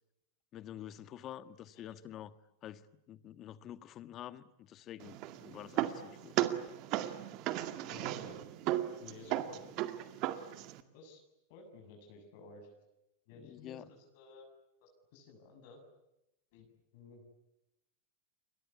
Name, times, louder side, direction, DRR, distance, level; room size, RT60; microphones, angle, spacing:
voice 1, 0.5-2.3 2.6-2.8 3.1-6.4 13.3-13.9, left 11 dB, 40° left, 13 dB, 1.6 m, -48 dB
sound 1, 5.0-10.8, right 14 dB, 50° right, 2.1 m, -36 dB
voice 2, 7.9-8.4 9.0-9.6 10.2-10.5 10.9-11.2 11.5-12.8 13.3-14.5 14.8-15.8 16.5-16.7 16.9-17.2, left 3 dB, 60° left, 3 dB, 7.0 m, -54 dB
30.0 x 22.5 x 8.5 m, 0.88 s
hypercardioid pair, 100°, 0 cm